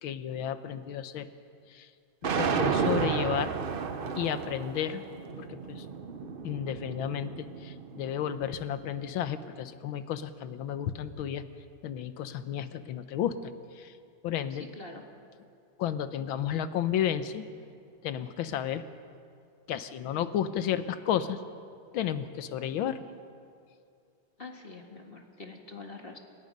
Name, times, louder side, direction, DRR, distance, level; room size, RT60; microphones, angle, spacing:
voice 1, 0.0-1.3 1.7-1.9 2.4-3.5 4.2-5.0 5.4-5.8 6.2-11.4 11.8-13.9 14.2-14.6 15.8-17.4 18.0-18.8 19.7-21.4 21.9-23.0, left 9 dB, 85° left, 11 dB, 1.7 m, -32 dB
sound 1, 2.2-8.4, right 5 dB, 65° right, 0.5 m, -32 dB
voice 2, 14.5-15.0 24.4-26.2, left 3 dB, 30° left, 3 dB, 1.8 m, -45 dB
29.5 x 18.0 x 5.4 m, 2.4 s
omnidirectional pair, 2.2 m